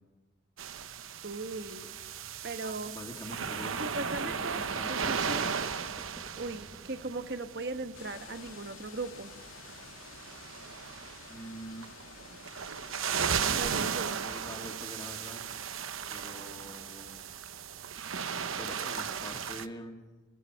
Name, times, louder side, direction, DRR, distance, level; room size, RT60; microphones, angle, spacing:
sound 1, 0.6-19.7, right 7 dB, 85° right, 0.9 m, -36 dB
voice 1, 1.2-1.9 2.4-2.9 3.8-5.5 6.4-9.3 13.6-14.3, right 3 dB, 55° right, 9 dB, 1.2 m, -38 dB
voice 2, 2.6-3.9 4.2-5.3 11.3-11.9 13.1-13.9 14.2-15.4 16.1-17.2 18.6-20.0, equal, 20° left, 2 dB, 2.4 m, -45 dB
sound 2, 2.7-7.6, equal, 5° right, 1.1 m, -52 dB
sound 3, 7.9-13.7, left 6 dB, 90° left, 2.4 m, -51 dB
28.5 x 17.5 x 6.4 m, 1.3 s
head